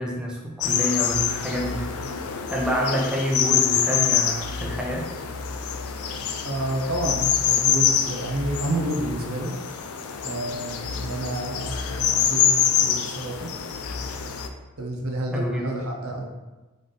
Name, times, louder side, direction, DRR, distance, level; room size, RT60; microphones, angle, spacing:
voice 1, 0.0-1.9 2.5-5.1 15.3-15.8, equal, 5° right, -2 dB, 0.4 m, -27 dB
sound 1, 0.6-14.5, left 8 dB, 80° left, 0.4 m, -25 dB
voice 2, 6.4-9.5 10.2-13.5 14.8-16.3, right 1 dB, 75° right, 1 dB, 0.8 m, -29 dB
3.9 x 3.4 x 3.8 m, 1.2 s
head